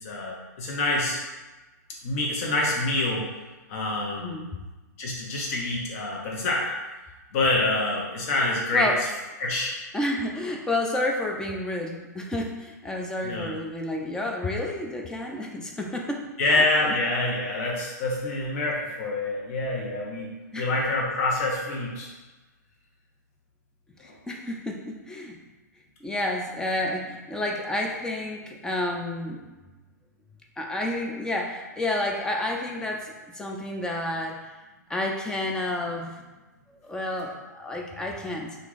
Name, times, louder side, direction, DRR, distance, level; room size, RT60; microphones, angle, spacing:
voice 1, 0.0-1.2 2.0-3.3 3.7-4.4 5.0-6.7 7.3-9.0 9.4-9.7 13.2-13.5 16.4-20.3 20.6-22.1, left 2 dB, 50° left, -2 dB, 1.0 m, -26 dB
voice 2, 4.2-4.6 8.7-9.0 9.9-16.3 16.9-17.0 20.5-20.7 24.0-25.4 26.0-29.5 30.6-34.5 34.9-36.2 36.8-38.7, left 1 dB, 5° left, 1 dB, 0.3 m, -30 dB
2.9 x 2.5 x 3.8 m, 1.2 s
hypercardioid pair, 135°, 10 cm